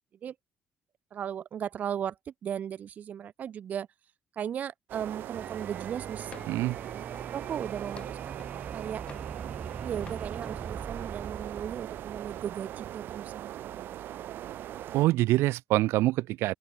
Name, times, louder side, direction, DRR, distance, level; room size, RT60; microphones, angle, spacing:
voice 1, 1.1-2.1 2.4-3.9 4.4-7.0 7.3-9.0 9.8-14.7, right 9 dB, 40° right, 1.6 m, -37 dB
sound 1, 4.9-15.1, right 12 dB, 55° right, 2.5 m, -40 dB
sound 2, 5.3-13.2, right 5 dB, 25° right, 1.7 m, -43 dB
sound 3, 6.3-6.7 7.1-8.6 9.1-9.8 10.1-10.3, left 5 dB, 25° left, 3.8 m, -51 dB
voice 2, 6.5-6.8 14.9-16.5, right 17 dB, 90° right, 2.4 m, -25 dB
open air
cardioid pair, 170°, 4 cm